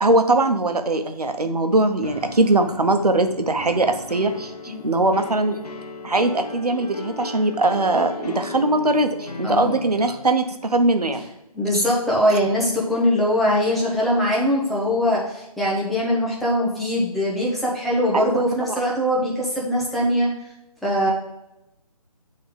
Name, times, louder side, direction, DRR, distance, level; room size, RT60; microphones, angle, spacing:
voice 1, 0.0-5.6 6.0-11.2 11.7-11.8 18.1-18.4, right 2 dB, 90° right, 6 dB, 1.0 m, -21 dB
sound 1, 2.0-10.3, left 2 dB, 85° left, 1.0 m, -36 dB
voice 2, 9.4-9.8 11.5-20.3 20.8-21.1, equal, ahead, -6 dB, 0.6 m, -22 dB
7.5 x 3.8 x 3.6 m, 0.90 s
figure-of-eight pair, 155°, 19 cm